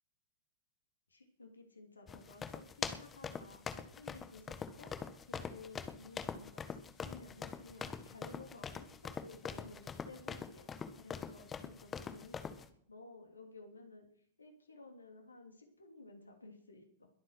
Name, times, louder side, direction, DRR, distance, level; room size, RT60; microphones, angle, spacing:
voice 1, 1.1-14.1 14.4-17.1, left 3 dB, 80° left, 4 dB, 3.3 m, -55 dB
sound 1, 2.1-12.7, left 6 dB, 20° left, 1.4 m, -43 dB
21.5 x 8.5 x 6.3 m, 0.64 s
figure-of-eight pair, 90°, 0 cm